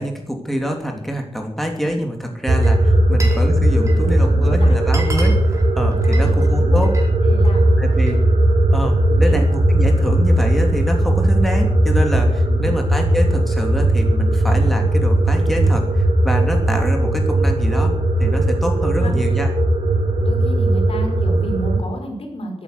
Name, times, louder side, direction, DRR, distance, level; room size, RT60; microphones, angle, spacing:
voice 1, 0.0-5.3 5.8-6.9 7.8-8.2 8.7-17.9 18.2-19.5, equal, ahead, 2 dB, 3.0 m, -25 dB
sound 1, 2.5-21.8, right 1 dB, 85° right, 3.1 m, -17 dB
Glass, 2.6-3.5 3.7-4.2 4.5-4.6 4.8-7.1 7.5-8.2, right 2 dB, 30° right, 4.9 m, -34 dB
voice 2, 4.0-4.8 6.0-6.8 7.2-7.7 9.1-9.4 12.5-12.8 18.8-19.2 20.2-22.6, equal, 65° left, 2 dB, 5.4 m, -32 dB
13.5 x 12.0 x 8.1 m, 0.71 s
wide cardioid pair, 105°, 10 cm